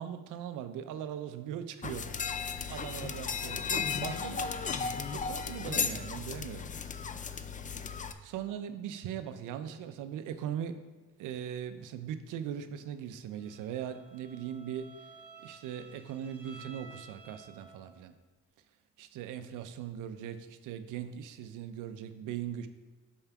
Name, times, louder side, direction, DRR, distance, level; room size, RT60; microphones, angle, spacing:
voice 1, 0.0-2.1 2.7-4.6 5.1-6.7 8.2-10.7 11.2-14.9 15.4-18.1 19.0-22.7, right 9 dB, 90° right, 10 dB, 0.6 m, -40 dB
sound 1, 1.8-8.1, left 5 dB, 25° left, 0.4 m, -35 dB
Bowed string instrument, 13.4-18.0, right 3 dB, 5° right, 1.8 m, -54 dB
5.5 x 4.6 x 5.8 m, 1.2 s
cardioid pair, 90°, 30 cm